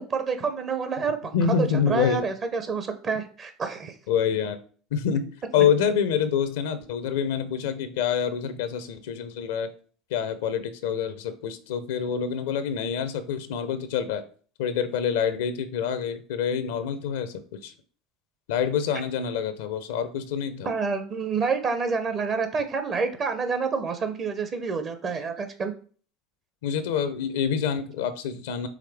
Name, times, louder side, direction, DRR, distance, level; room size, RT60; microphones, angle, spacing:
voice 1, 0.0-3.9 20.6-25.7, right 5 dB, 40° right, 8 dB, 0.6 m, -28 dB
voice 2, 1.3-2.2 4.1-4.6 4.9-9.7 10.1-14.2 14.6-17.7 18.5-20.7 26.6-28.7, left 7 dB, 70° left, 11 dB, 0.5 m, -26 dB
4.9 x 3.2 x 3.4 m, 0.44 s
hypercardioid pair, 75°, 0 cm